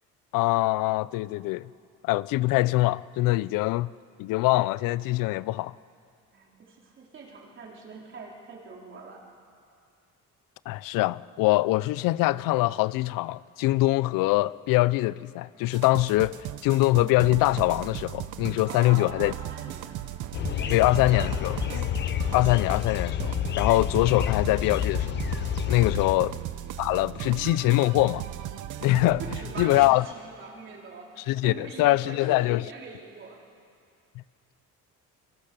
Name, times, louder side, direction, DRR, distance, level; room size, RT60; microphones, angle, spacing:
voice 1, 0.3-1.7 2.0-3.9 4.2-5.7 10.7-19.3 20.7-21.6 22.3-25.2 25.7-26.4 26.8-28.3 28.8-29.2 29.6-30.0 31.3-32.7, left 18 dB, 90° left, 0.6 m, -23 dB
voice 2, 6.3-9.2 18.6-20.1 20.6-21.6 26.1-26.3 29.2-33.4, right 4 dB, 35° right, 3.7 m, -43 dB
sound 1, 15.7-29.9, right 12 dB, 65° right, 1.0 m, -37 dB
sound 2, 20.3-26.1, left 10 dB, 35° left, 0.6 m, -29 dB
25.0 x 23.0 x 6.8 m
cardioid pair, 175°, 32 cm